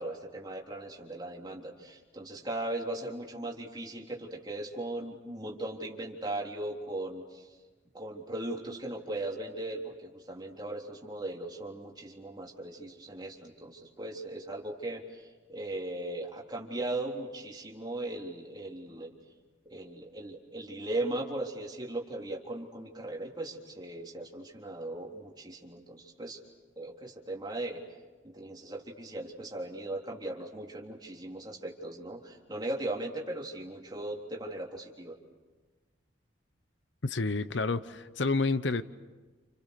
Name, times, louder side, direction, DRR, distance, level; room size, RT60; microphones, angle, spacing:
voice 1, 0.0-7.5 7.9-19.1 19.7-26.4 26.8-27.8 28.2-35.2, right 1 dB, 20° right, -2 dB, 3.6 m, -38 dB
voice 2, 37.0-38.8, left 3 dB, 65° left, 13 dB, 0.9 m, -29 dB
29.5 x 29.5 x 6.7 m, 1.2 s
head